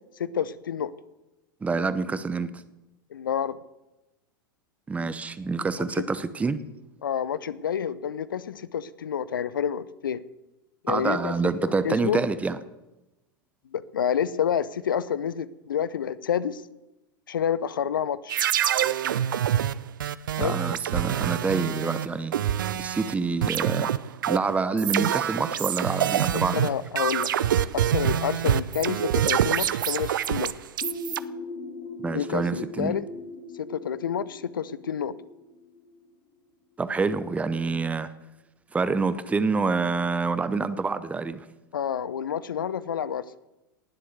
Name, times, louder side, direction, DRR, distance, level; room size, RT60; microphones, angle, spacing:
voice 1, 0.2-0.9 3.1-3.6 7.0-10.2 10.8-12.2 13.7-16.6 17.3-18.4 20.4-20.6 26.5-30.5 32.1-33.0 33.6-35.1 41.7-43.2, left 8 dB, 70° left, 0.8 m, -29 dB
voice 2, 1.6-2.5 4.9-6.6 10.9-12.6 20.4-23.9 24.3-26.6 32.0-32.9 36.8-38.1 38.7-41.5, right 4 dB, 10° right, 0.9 m, -27 dB
sound 1, 18.3-23.1 23.4-31.2, right 10 dB, 65° right, 0.6 m, -26 dB
sound 2, 30.8-36.4, left 3 dB, 40° left, 2.3 m, -40 dB
18.5 x 7.7 x 8.0 m
figure-of-eight pair, 90°, 12 cm